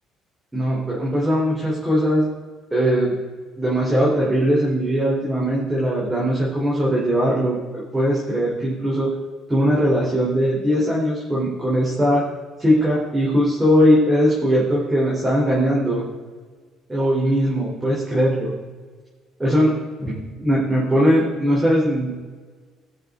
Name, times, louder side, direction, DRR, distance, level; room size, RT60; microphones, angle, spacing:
voice 1, 0.5-2.3 2.7-3.1 3.6-9.1 9.5-12.3 12.6-16.0 16.9-18.5 19.4-22.1, equal, 15° right, -6 dB, 3.3 m, -20 dB
18.5 x 6.7 x 3.7 m, 1.5 s
supercardioid pair, 85°, 0 cm